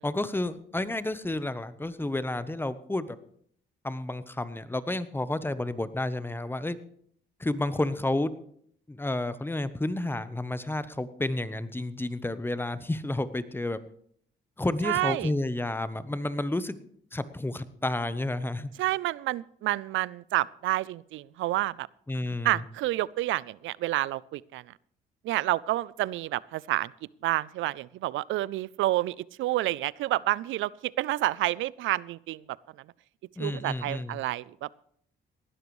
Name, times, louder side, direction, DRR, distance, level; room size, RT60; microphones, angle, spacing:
voice 1, 0.0-3.2 3.8-6.8 7.4-8.3 8.9-13.8 14.6-16.8 17.1-18.7 22.1-22.6 33.4-34.2, left 2 dB, 10° left, 14 dB, 0.8 m, -31 dB
voice 2, 14.8-15.3 18.8-21.9 22.4-24.7 25.2-26.9 27.2-32.4 33.4-34.8, right 16 dB, 80° right, 22 dB, 0.4 m, -29 dB
18.5 x 12.0 x 3.2 m, 0.64 s
cardioid pair, 90°, 20 cm